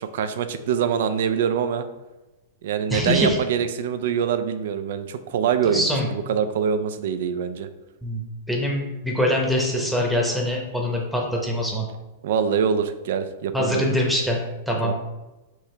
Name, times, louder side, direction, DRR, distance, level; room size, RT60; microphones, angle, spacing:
voice 1, 0.0-1.8 2.6-7.7 12.2-14.0 14.8-14.9, right 7 dB, 70° right, 10 dB, 0.3 m, -24 dB
voice 2, 2.9-3.4 5.6-6.1 8.0-8.2 8.5-11.8 13.5-14.9, left 1 dB, ahead, -2 dB, 0.8 m, -23 dB
4.6 x 2.8 x 3.2 m, 1.0 s
hypercardioid pair, 125°, 0 cm